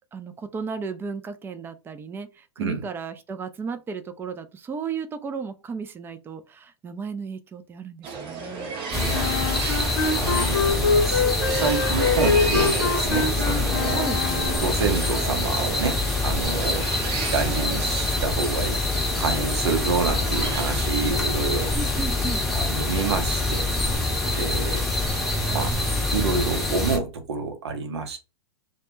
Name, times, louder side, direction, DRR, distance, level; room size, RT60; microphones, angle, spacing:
voice 1, 0.1-8.7 13.9-14.2 21.7-22.4, right 5 dB, 15° right, 0.3 m, -34 dB
sound 1, 8.0-20.8, right 4 dB, 40° right, 0.7 m, -34 dB
sound 2, 8.9-27.0, left 2 dB, ahead, 0.8 m, -25 dB
voice 2, 8.9-14.0 14.6-16.9 17.3-18.8 19.2-21.8 22.5-23.7 24.3-24.9 25.5-25.7 26.1-28.2, right 4 dB, 75° right, 0.7 m, -28 dB
Wind instrument woodwind instrument, 9.1-14.8, left 5 dB, 75° left, 0.8 m, -25 dB
2.1 x 2.1 x 3.0 m
hypercardioid pair, 105°, 14 cm